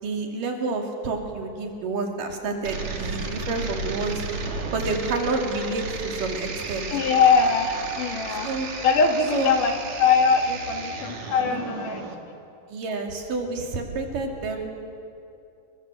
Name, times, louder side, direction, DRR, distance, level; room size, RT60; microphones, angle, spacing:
voice 1, 0.0-4.2 4.7-6.9 8.4-8.7 9.3-9.5 11.5-11.6 12.7-14.7, right 3 dB, 75° right, 2 dB, 4.2 m, -29 dB
sound 1, 2.6-12.1, right 4 dB, 55° right, 3.4 m, -33 dB
voice 2, 6.9-8.5 8.8-9.7 10.0-12.0, left 5 dB, 70° left, 4 dB, 3.6 m, -21 dB
27.5 x 24.0 x 7.7 m, 2.6 s
omnidirectional pair, 3.9 m